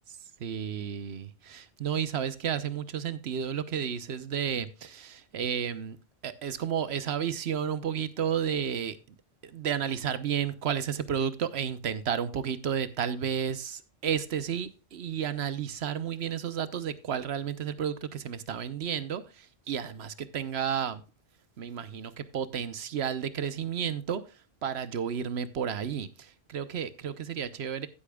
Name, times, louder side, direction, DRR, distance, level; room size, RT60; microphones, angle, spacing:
voice 1, 0.4-6.0 6.2-9.0 9.4-21.0 21.6-24.2 24.6-27.9, right 8 dB, 80° right, 1.1 m, -32 dB
15.5 x 8.4 x 2.3 m
omnidirectional pair, 1.1 m